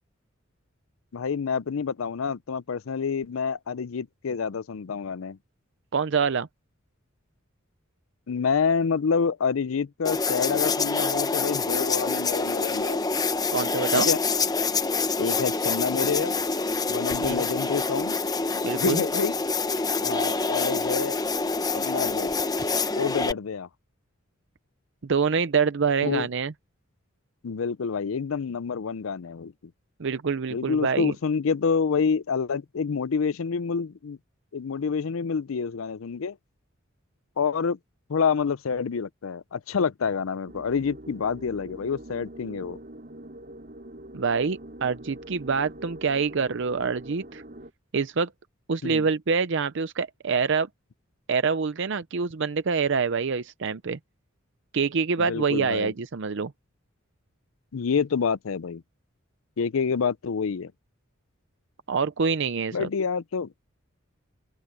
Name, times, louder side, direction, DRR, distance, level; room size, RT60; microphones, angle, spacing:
voice 1, 1.1-5.4 8.3-13.0 13.9-14.2 15.2-16.3 16.9-18.2 18.8-19.3 20.0-21.1 21.7-22.3 23.0-23.7 26.0-26.3 27.4-29.5 30.5-34.2 34.5-36.4 37.4-37.8 38.1-42.8 48.8-49.1 55.2-55.9 57.7-58.8 59.6-60.7 62.7-63.5, left 5 dB, 80° left, 0.5 m, -27 dB
voice 2, 5.9-6.5 13.5-14.1 17.2-17.4 18.6-19.0 25.0-26.5 30.0-31.1 44.1-47.4 47.9-48.3 48.7-50.7 51.3-54.0 54.7-56.5 61.9-62.9, right 5 dB, 60° right, 0.6 m, -26 dB
sound 1, 10.0-23.3, left 4 dB, 20° left, 0.8 m, -26 dB
sound 2, 40.5-47.7, right 1 dB, 45° right, 6.5 m, -44 dB
open air
head